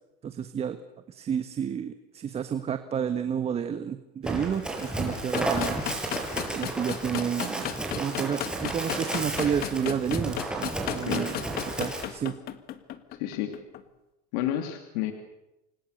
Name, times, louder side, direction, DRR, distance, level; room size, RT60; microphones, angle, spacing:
voice 1, 0.2-0.8 1.1-5.8 6.5-7.7 7.9-11.4 11.8-12.3, right 8 dB, 30° right, 9 dB, 1.5 m, -30 dB
Run, 4.2-12.0, right 2 dB, 5° right, 6.9 m, -32 dB
sound 1, 5.3-13.8, left 12 dB, 50° left, 1.8 m, -34 dB
voice 2, 13.2-13.5 14.3-15.1, left 11 dB, 75° left, 5 dB, 2.9 m, -30 dB
29.5 x 25.0 x 6.7 m, 0.96 s
supercardioid pair, 125°, 20 cm